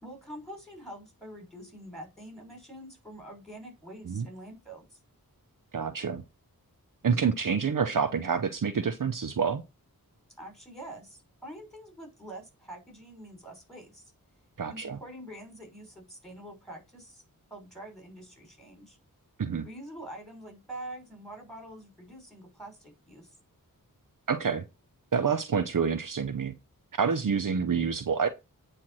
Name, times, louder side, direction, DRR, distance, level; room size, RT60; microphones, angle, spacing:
voice 1, 0.0-5.0 10.4-14.1 14.7-17.2 17.5-19.0 19.6-23.3, right 1 dB, ahead, 5.7 m, -45 dB
voice 2, 5.7-6.2 7.0-9.6 14.6-15.0 19.4-19.7 24.3-24.6 25.1-26.5 27.0-28.3, right 6 dB, 60° right, 0.8 m, -27 dB
8.6 x 4.5 x 6.3 m
wide cardioid pair, 55°, 36 cm